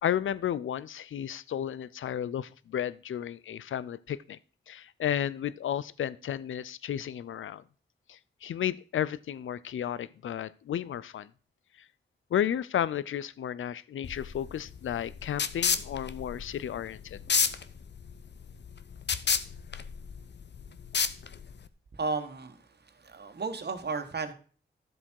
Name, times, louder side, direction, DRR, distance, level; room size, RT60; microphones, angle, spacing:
voice 1, 0.0-4.4 4.7-7.6 8.1-11.3 12.3-17.2, left 10 dB, 85° left, 19 dB, 0.5 m, -33 dB
sound 1, 14.0-21.7, left 6 dB, 60° left, 0.8 m, -31 dB
voice 2, 22.0-22.6 23.0-24.3, right 4 dB, 55° right, 7 dB, 1.6 m, -33 dB
12.5 x 7.4 x 4.6 m, 0.41 s
cardioid pair, 65°, 20 cm